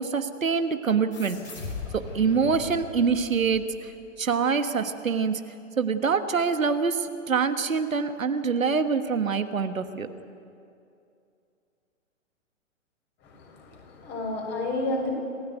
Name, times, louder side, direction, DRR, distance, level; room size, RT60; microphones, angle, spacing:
voice 1, 0.0-1.4 1.9-3.9 4.2-5.4 5.8-10.1, right 5 dB, 85° right, 8 dB, 1.6 m, -25 dB
sound 1, 1.1-4.2, left 4 dB, 75° left, 5.9 m, -40 dB
voice 2, 13.2-15.1, left 2 dB, 25° left, 1 dB, 6.2 m, -31 dB
27.0 x 15.0 x 9.3 m, 2.5 s
hypercardioid pair, 125°, 39 cm